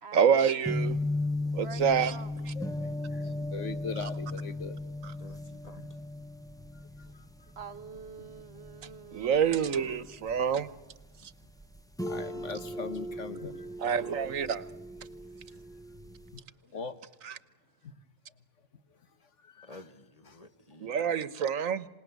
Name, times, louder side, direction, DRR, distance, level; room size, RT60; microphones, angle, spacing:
voice 1, 0.1-1.0 1.5-2.2 2.4-2.5 5.0-5.1 9.1-10.7 11.2-11.3 13.8-14.6 17.2-17.3 20.8-21.9, right 7 dB, 90° right, 1.5 m, -27 dB
sound 1, 0.7-16.4, left 2 dB, 5° left, 0.9 m, -37 dB
voice 2, 1.6-2.3 7.6-9.8, right 5 dB, 55° right, 1.4 m, -46 dB
voice 3, 2.5-4.8 5.8-5.9 6.7-7.2 8.2-8.3 12.1-13.7 16.3-17.0 17.8-17.9 19.4-19.8 20.3-20.4, left 5 dB, 65° left, 1.7 m, -41 dB
voice 4, 5.2-6.0 14.1-14.5 19.6-21.2, left 2 dB, 30° left, 1.6 m, -52 dB
27.0 x 19.5 x 9.4 m
omnidirectional pair, 1.3 m